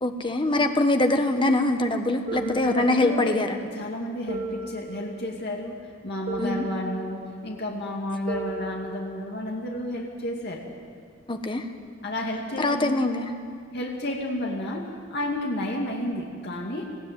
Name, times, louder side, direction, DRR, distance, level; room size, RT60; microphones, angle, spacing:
voice 1, 0.0-3.5 6.4-6.6 11.3-11.7 12.6-13.3, left 2 dB, 25° left, 6 dB, 1.3 m, -23 dB
voice 2, 2.3-3.3 3.6-10.7 12.0-13.1 13.7-16.9, left 1 dB, 55° left, -1 dB, 2.4 m, -31 dB
sound 1, 2.3-3.4 4.3-5.5 6.3-7.4 8.3-9.5, right 2 dB, 40° right, 2.9 m, -36 dB
20.5 x 15.0 x 9.4 m, 2.1 s
head